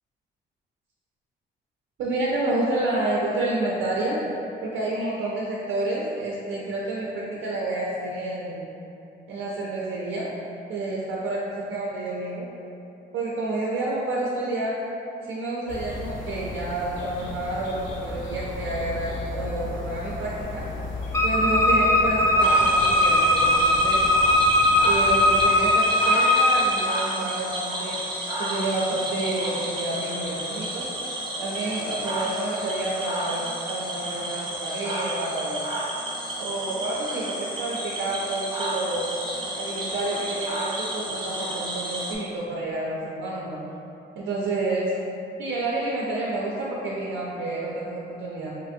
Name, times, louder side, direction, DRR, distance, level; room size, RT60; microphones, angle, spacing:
voice 1, 2.0-4.2 4.6-8.7 9.3-10.3 10.7-12.5 13.1-14.8 15.2-20.6 21.2-24.0 24.8-28.0 28.4-30.9 31.4-35.6 36.4-39.1 39.6-43.6 44.2-44.9 45.4-48.5, right 2 dB, 80° right, -5 dB, 0.4 m, -29 dB
sound 1, 15.7-25.5, left 2 dB, 80° left, 0.6 m, -35 dB
Wind instrument woodwind instrument, 21.1-26.6, left 1 dB, 15° left, 0.3 m, -19 dB
Cricket / Frog, 22.4-42.2, right 1 dB, 25° right, 0.6 m, -32 dB
2.9 x 2.5 x 2.6 m, 2.8 s
cardioid pair, 90°, 20 cm